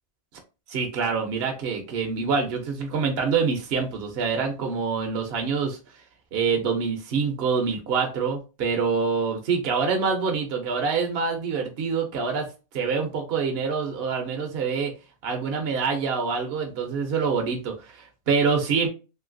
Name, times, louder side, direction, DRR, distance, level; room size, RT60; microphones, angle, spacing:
voice 1, 0.7-5.8 6.3-12.5 12.7-14.9 15.2-18.9, right 5 dB, 60° right, 3 dB, 0.7 m, -26 dB
3.0 x 2.7 x 2.5 m, 0.31 s
omnidirectional pair, 1.5 m